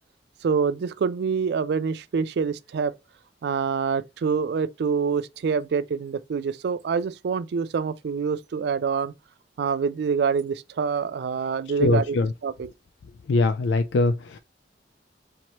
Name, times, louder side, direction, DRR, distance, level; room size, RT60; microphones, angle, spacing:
voice 1, 0.4-2.9 3.4-9.1 9.6-12.2 12.4-12.7, right 6 dB, 65° right, 0.3 m, -26 dB
voice 2, 11.8-12.3 13.3-14.4, left 3 dB, 85° left, 0.4 m, -22 dB
4.5 x 2.9 x 2.9 m
head